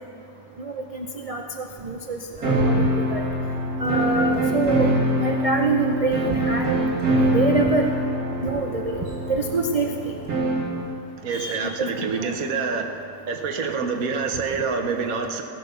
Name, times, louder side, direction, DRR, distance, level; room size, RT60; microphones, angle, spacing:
voice 1, 0.6-3.2 3.8-6.7 7.3-7.9 8.4-9.0 9.3-10.1 11.3-12.4, right 3 dB, 40° right, 2 dB, 0.5 m, -26 dB
sound 1, 2.4-10.8, equal, 75° right, 3.0 m, -24 dB
voice 2, 11.2-15.4, right 5 dB, 60° right, 4 dB, 1.5 m, -27 dB
16.5 x 9.4 x 6.8 m, 2.4 s
omnidirectional pair, 1.7 m